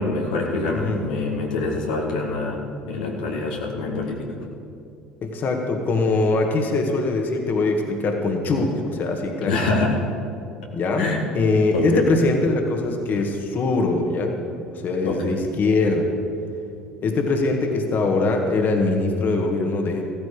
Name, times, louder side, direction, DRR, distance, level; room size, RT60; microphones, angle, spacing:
voice 1, 0.0-4.4 9.4-10.0 11.0-11.2 11.7-12.0 15.0-15.4, left 3 dB, 80° left, -1 dB, 2.0 m, -25 dB
voice 2, 0.7-1.0 5.2-9.7 10.7-11.1 11.3-14.4 14.7-16.1 17.0-20.0, left 3 dB, 45° left, 3 dB, 1.9 m, -22 dB
15.0 x 14.5 x 5.2 m, 2.5 s
hypercardioid pair, 65°, 4 cm